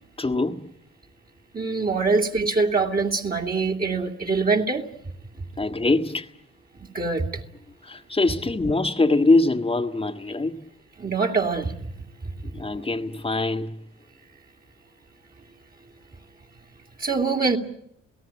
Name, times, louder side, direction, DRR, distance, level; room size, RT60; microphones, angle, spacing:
voice 1, 0.2-0.7 1.9-2.0 5.6-6.3 7.8-10.6 12.5-13.8, left 2 dB, 20° left, 1.7 m, -23 dB
voice 2, 1.5-4.8 6.9-7.4 11.0-11.9 17.0-17.6, right 4 dB, 30° right, 2.4 m, -24 dB
28.0 x 17.5 x 8.8 m
cardioid pair, 90°, 30 cm